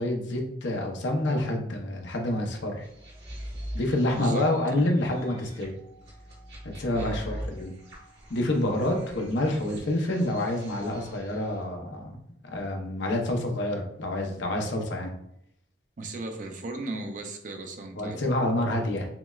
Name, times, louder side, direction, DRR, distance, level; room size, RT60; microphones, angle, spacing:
voice 1, 0.0-2.8 3.7-5.7 6.7-7.7 8.3-12.2 12.4-15.1 18.0-19.1, left 1 dB, 90° left, 2 dB, 0.7 m, -28 dB
sound 1, 2.8-11.6, equal, 70° right, 1.5 m, -42 dB
voice 2, 4.1-4.9 6.9-7.2 16.0-18.2, right 2 dB, 45° right, 5 dB, 0.5 m, -37 dB
5.8 x 2.1 x 2.3 m, 0.76 s
head